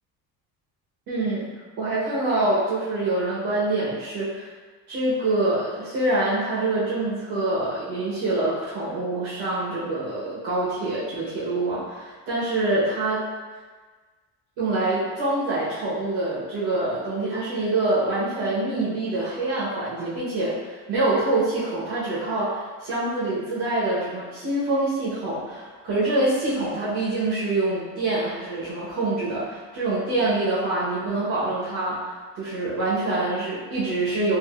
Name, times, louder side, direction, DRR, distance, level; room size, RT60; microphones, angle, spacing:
voice 1, 1.1-1.5 1.8-4.5 4.9-13.3 14.6-32.1 32.4-34.4, right 2 dB, 85° right, -9 dB, 1.0 m, -25 dB
3.3 x 2.6 x 2.3 m, 1.4 s
cardioid pair, 175°, 37 cm